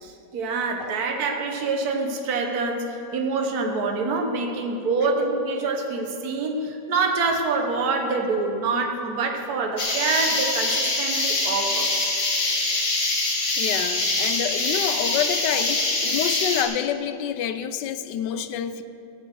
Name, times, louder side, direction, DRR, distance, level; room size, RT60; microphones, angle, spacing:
voice 1, 0.0-11.9, right 3 dB, 65° right, 3 dB, 1.5 m, -26 dB
sound 1, 9.8-16.6, left 2 dB, 50° left, 2.0 m, -24 dB
voice 2, 13.6-18.8, left 9 dB, 85° left, 11 dB, 1.3 m, -28 dB
17.5 x 6.7 x 6.2 m, 2.8 s
omnidirectional pair, 1.8 m